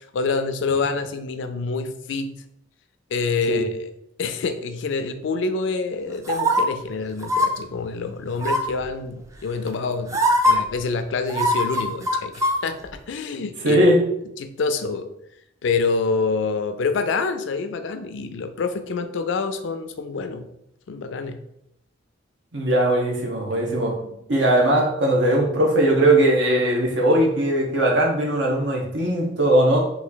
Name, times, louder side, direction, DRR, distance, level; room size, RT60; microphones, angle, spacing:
voice 1, 0.0-2.4 3.1-3.7 4.2-12.8 13.1-13.8 14.4-15.1 15.6-20.5 20.9-21.4, left 4 dB, 70° left, 9 dB, 0.4 m, -26 dB
sound 1, 6.3-6.6 7.2-7.5 8.4-8.8 9.7-9.8 10.1-10.5 11.3-12.6 12.9-13.0, equal, 15° right, 0.4 m, -20 dB
voice 2, 13.6-14.0 22.5-29.8, right 1 dB, 65° right, 0 dB, 0.9 m, -19 dB
3.0 x 2.5 x 3.9 m, 0.79 s
head